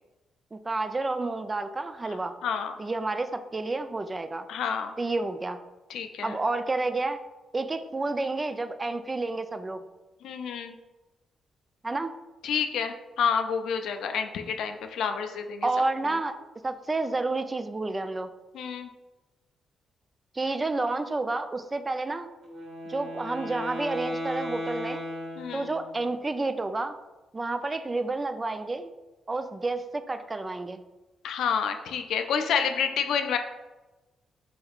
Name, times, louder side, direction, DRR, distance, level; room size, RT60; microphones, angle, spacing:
voice 1, 0.5-2.3 2.8-4.5 5.0-5.6 6.2-7.2 7.5-9.8 11.8-12.1 15.6-16.3 16.6-18.3 20.3-22.3 22.9-25.0 25.5-26.9 27.3-28.9 29.3-30.8, right 2 dB, 30° right, 10 dB, 0.3 m, -30 dB
voice 2, 2.1-2.7 4.5-5.0 5.9-6.4 10.2-10.8 12.4-15.7 16.0-16.2 18.5-18.9 25.4-25.7 31.2-33.4, left 7 dB, 80° left, 6 dB, 0.3 m, -29 dB
Wind instrument woodwind instrument, 22.4-26.1, equal, 75° right, 1.2 m, -36 dB
4.5 x 3.5 x 2.3 m, 1.1 s
supercardioid pair, 60°, 0 cm